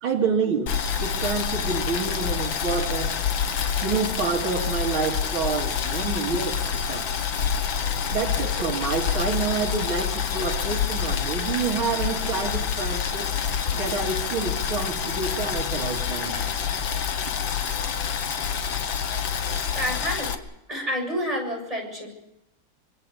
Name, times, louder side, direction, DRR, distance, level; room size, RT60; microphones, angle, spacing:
voice 1, 0.0-3.2 3.8-7.1 8.1-13.3 13.7-16.4, right 5 dB, 80° right, 2 dB, 2.9 m, -28 dB
Boiling, 0.7-20.4, left 7 dB, 70° left, 2.1 m, -27 dB
voice 2, 19.5-20.3 20.7-22.1, equal, 15° right, 1 dB, 7.2 m, -29 dB
25.0 x 24.0 x 6.8 m, 0.88 s
omnidirectional pair, 2.2 m